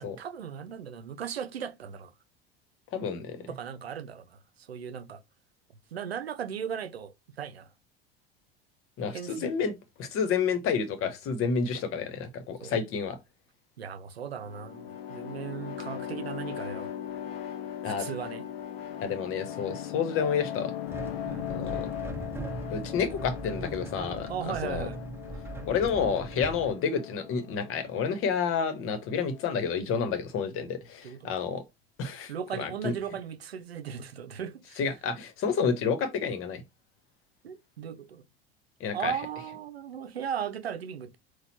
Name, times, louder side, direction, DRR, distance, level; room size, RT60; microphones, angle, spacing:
voice 1, 0.0-2.1 3.5-5.2 5.9-7.7 9.1-9.5 12.6-12.7 13.8-16.9 17.8-18.4 21.3-21.5 24.3-25.0 31.0-31.3 32.3-34.8 37.4-38.2 38.9-41.2, right 8 dB, 90° right, 0.6 m, -37 dB
voice 2, 2.9-3.5 9.0-9.7 10.0-13.2 17.8-18.1 19.0-20.7 21.5-21.9 22.7-24.9 25.7-31.6 32.0-32.9 34.8-36.6 38.8-39.1, left 6 dB, 45° left, 1.1 m, -30 dB
sound 1, 14.3-29.7, left 10 dB, 75° left, 0.8 m, -39 dB
sound 2, 20.9-26.7, right 2 dB, 10° right, 0.9 m, -40 dB
4.1 x 2.4 x 4.3 m
hypercardioid pair, 75°, 30 cm